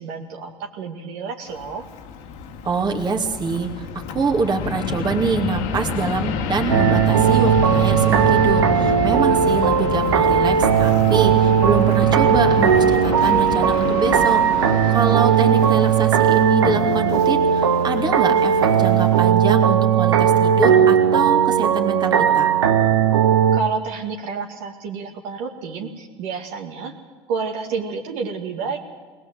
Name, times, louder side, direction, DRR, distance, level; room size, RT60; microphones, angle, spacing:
voice 1, 0.0-1.9 23.5-26.9 27.3-28.8, right 5 dB, 65° right, 1 dB, 2.3 m, -29 dB
Fixed-wing aircraft airplane, 1.5-19.3, left 5 dB, 60° left, 1.7 m, -29 dB
voice 2, 2.6-3.9 4.1-22.5, right 4 dB, 30° right, 2 dB, 2.5 m, -25 dB
sound 1, 6.7-23.6, right 8 dB, 85° right, 1.0 m, -17 dB
20.0 x 19.5 x 7.8 m, 1.4 s
hypercardioid pair, 75°, 14 cm